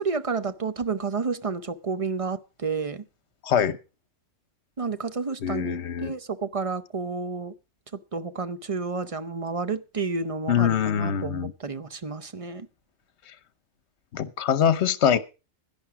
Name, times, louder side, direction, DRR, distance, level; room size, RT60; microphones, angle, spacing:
voice 1, 0.0-3.0 4.8-7.5 7.9-12.7, right 4 dB, 35° right, 0.7 m, -30 dB
voice 2, 3.4-3.8 5.4-6.1 10.5-11.5 14.1-15.2, left 8 dB, 65° left, 1.2 m, -23 dB
11.0 x 10.5 x 5.8 m
omnidirectional pair, 1.3 m